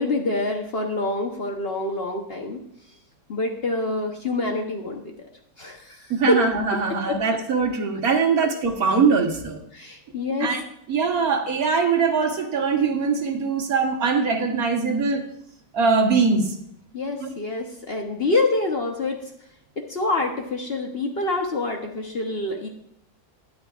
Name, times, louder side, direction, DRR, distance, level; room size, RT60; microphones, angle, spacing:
voice 1, 0.0-2.6 3.3-5.0 5.6-6.0 6.3-6.4 7.1-7.2 9.7-10.5 16.9-19.2 19.8-22.7, left 2 dB, 45° left, 2 dB, 0.9 m, -26 dB
voice 2, 6.1-9.6 10.4-10.6 10.9-15.2 15.7-16.5 17.2-17.3, right 5 dB, 65° right, 4 dB, 1.6 m, -22 dB
11.5 x 10.0 x 2.4 m, 0.74 s
omnidirectional pair, 1.7 m